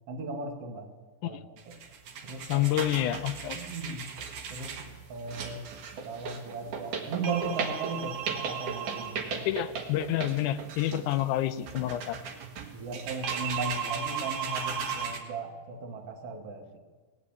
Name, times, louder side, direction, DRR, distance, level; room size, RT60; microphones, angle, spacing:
voice 1, 0.1-0.9 1.2-1.4 1.7-1.8 2.2-2.8 3.5-4.0 4.5-5.7 6.0-9.5 10.8-10.9 12.7-16.8, right 3 dB, 55° right, 4 dB, 2.4 m, -37 dB
sound 1, 1.6-15.2, right 6 dB, 90° right, 3.0 m, -36 dB
voice 2, 2.5-3.7 9.5-12.2, left 13 dB, 85° left, 12 dB, 2.1 m, -28 dB
19.0 x 8.6 x 8.4 m, 1.4 s
omnidirectional pair, 3.4 m